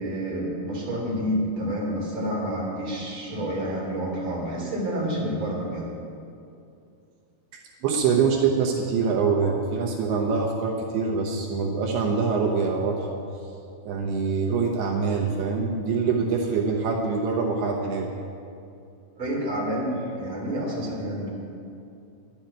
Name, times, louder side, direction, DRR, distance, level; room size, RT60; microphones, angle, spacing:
voice 1, 0.0-5.9 19.2-21.3, equal, 35° right, -5 dB, 3.9 m, -29 dB
voice 2, 7.8-13.2 13.8-18.1, right 5 dB, 80° right, 0 dB, 3.1 m, -24 dB
11.5 x 7.9 x 8.8 m, 2.5 s
omnidirectional pair, 4.6 m